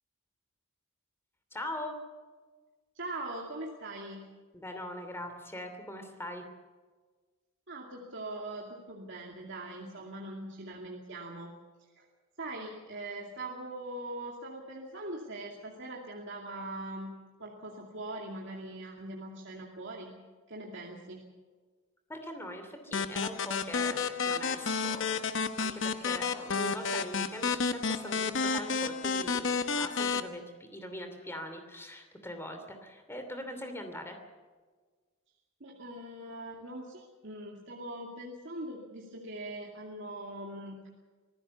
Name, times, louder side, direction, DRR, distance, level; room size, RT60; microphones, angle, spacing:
voice 1, 1.5-2.0 4.5-6.4 22.1-30.4 30.7-34.2, left 1 dB, 10° left, 6 dB, 2.8 m, -41 dB
voice 2, 2.9-4.2 7.7-11.5 11.9-12.1 12.4-20.2 20.5-21.3 35.6-40.9, right 1 dB, 55° right, -1 dB, 2.5 m, -41 dB
sound 1, 22.9-30.2, left 5 dB, 55° left, 1.1 m, -31 dB
25.5 x 15.0 x 7.0 m, 1.4 s
head